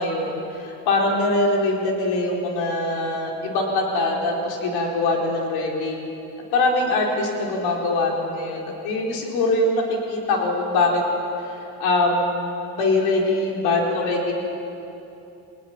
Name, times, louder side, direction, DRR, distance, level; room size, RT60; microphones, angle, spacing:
voice 1, 0.0-6.0 6.5-11.0 11.4-14.3, left 2 dB, 90° left, -1 dB, 4.2 m, -23 dB
24.5 x 19.0 x 8.9 m, 3.0 s
cardioid pair, 100°, 37 cm